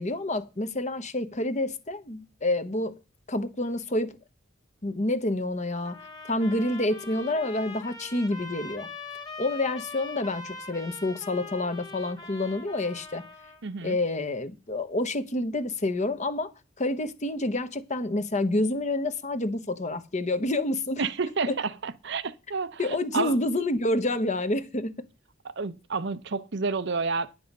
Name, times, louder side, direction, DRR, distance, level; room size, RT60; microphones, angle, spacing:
voice 1, 0.0-3.0 3.3-4.2 4.8-6.0 6.3-8.9 9.4-13.2 13.8-16.5 16.8-21.0 21.5-21.6 22.8-24.9, left 2 dB, 35° left, 1.1 m, -28 dB
sound 1, 5.8-13.6, left 3 dB, 20° left, 1.7 m, -42 dB
voice 2, 13.6-14.0 21.0-22.8 23.1-23.3 25.6-27.3, right 4 dB, 65° right, 0.8 m, -29 dB
10.5 x 7.8 x 5.4 m
head